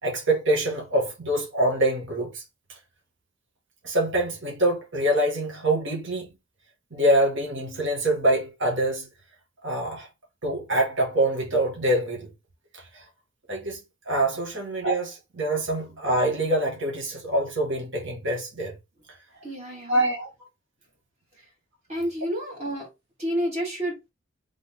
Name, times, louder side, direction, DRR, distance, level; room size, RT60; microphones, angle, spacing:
voice 1, 0.0-2.4 3.8-6.3 6.9-9.1 9.6-10.1 10.4-12.3 12.7-13.0 13.5-13.8 14.1-18.7 19.9-20.3, right 1 dB, 60° right, 1.7 m, -25 dB
voice 2, 19.4-20.0 21.9-22.9 23.2-23.9, equal, 35° right, 1.8 m, -29 dB
3.9 x 3.6 x 3.6 m
head